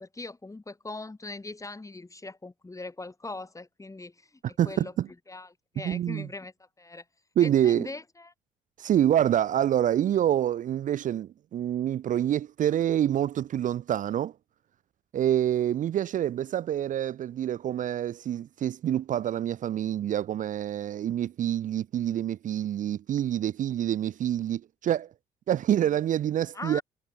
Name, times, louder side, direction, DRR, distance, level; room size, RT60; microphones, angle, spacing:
voice 1, 0.0-4.9 5.3-5.5 5.7-7.0 7.4-8.3 26.5-26.8, left 2 dB, 20° left, 3.3 m, -40 dB
voice 2, 4.6-5.1 5.8-6.3 7.4-7.9 8.8-14.3 15.1-25.1 25.5-26.8, right 11 dB, 50° right, 0.6 m, -26 dB
hypercardioid pair, 50°, 17 cm